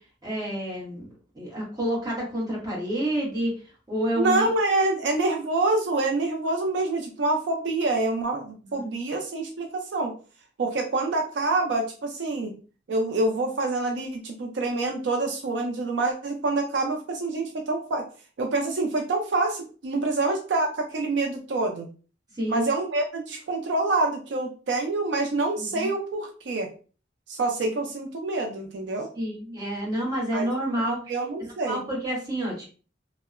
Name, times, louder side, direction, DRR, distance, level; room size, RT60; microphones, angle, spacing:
voice 1, 0.2-1.1 1.3-3.5 3.9-4.5 8.7-8.9 22.4-22.6 25.6-25.9 29.1-31.0 31.7-32.7, equal, 20° right, -4 dB, 1.1 m, -28 dB
voice 2, 4.2-10.1 10.6-12.5 12.9-18.0 18.4-21.9 22.5-26.7 27.3-29.1 30.3-30.5 31.1-31.8, right 2 dB, 75° right, 3 dB, 0.4 m, -26 dB
2.7 x 2.0 x 2.4 m, 0.37 s
head